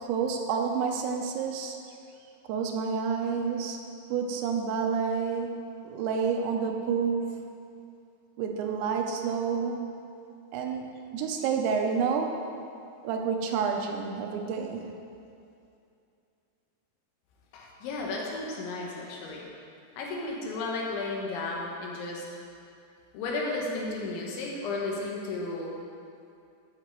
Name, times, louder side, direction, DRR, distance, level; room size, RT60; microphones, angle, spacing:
voice 1, 0.0-1.8 2.5-7.5 8.4-9.9 10.5-12.4 13.0-14.9, right 6 dB, 85° right, 3 dB, 3.1 m, -29 dB
voice 2, 17.5-19.4 20.0-22.3 23.1-25.7, left 3 dB, 85° left, -2 dB, 3.7 m, -33 dB
13.0 x 7.1 x 4.6 m, 2.5 s
omnidirectional pair, 5.2 m